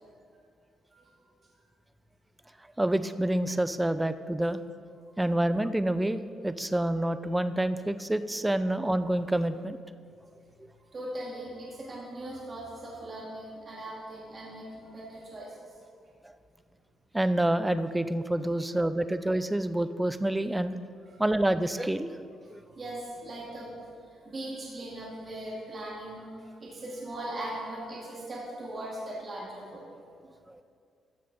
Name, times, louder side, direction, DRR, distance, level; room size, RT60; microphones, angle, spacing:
voice 1, 2.8-4.6 5.2-9.8 10.6-10.7 16.2-16.3 17.1-20.7 21.2-22.1 22.5-22.6 30.5-30.6, right 1 dB, 10° right, 12 dB, 0.4 m, -27 dB
voice 2, 10.8-15.8 21.1-21.3 22.4-30.3, right 1 dB, 40° right, -5 dB, 2.2 m, -40 dB
13.5 x 6.4 x 4.1 m, 2.3 s
cardioid pair, 90°, 0 cm